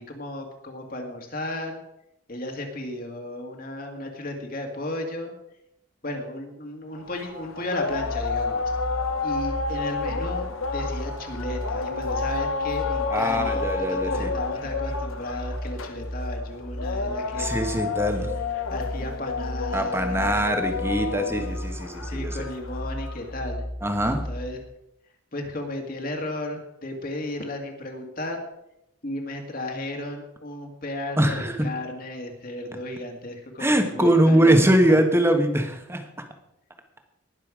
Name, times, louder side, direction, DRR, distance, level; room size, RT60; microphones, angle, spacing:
voice 1, 0.0-1.8 2.3-5.4 6.0-8.8 9.2-18.0 18.7-20.2 22.1-23.6 24.1-24.6 25.3-28.4 29.0-35.0, left 1 dB, 45° left, 3 dB, 1.9 m, -34 dB
sound 1, 7.0-23.3, left 4 dB, 80° left, 1.1 m, -31 dB
sound 2, 7.9-24.7, equal, 35° right, 2.7 m, -35 dB
voice 2, 13.1-14.3 17.4-18.3 19.7-22.4 23.8-24.2 31.2-31.7 33.6-36.1, right 1 dB, 10° right, 5 dB, 1.3 m, -22 dB
19.5 x 6.9 x 5.0 m, 0.83 s
head